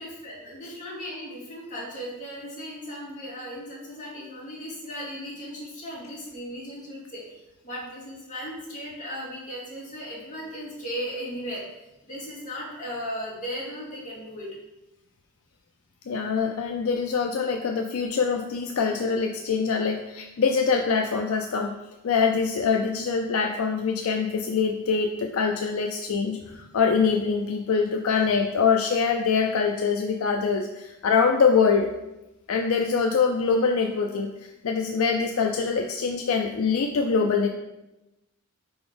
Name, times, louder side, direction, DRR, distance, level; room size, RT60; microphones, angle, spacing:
voice 1, 0.0-11.6 12.0-14.5 26.4-26.5 32.7-32.9, equal, 40° left, -6 dB, 2.3 m, -37 dB
voice 2, 16.1-21.7 22.0-31.9 32.5-37.5, left 5 dB, 70° left, 4 dB, 0.4 m, -24 dB
4.8 x 4.0 x 5.1 m, 0.95 s
head